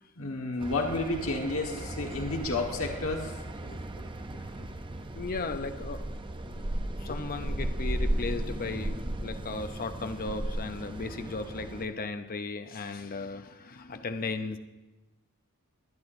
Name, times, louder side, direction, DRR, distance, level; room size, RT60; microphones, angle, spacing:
voice 1, 0.2-3.4 4.0-4.1, left 2 dB, 65° left, 1 dB, 1.5 m, -31 dB
sound 1, 0.6-11.9, right 1 dB, 20° right, 0.6 m, -35 dB
voice 2, 4.3-4.7 5.1-6.0 6.4-6.7 7.0-14.6, left 3 dB, 40° left, 7 dB, 0.6 m, -36 dB
22.5 x 9.8 x 2.6 m, 1.1 s
head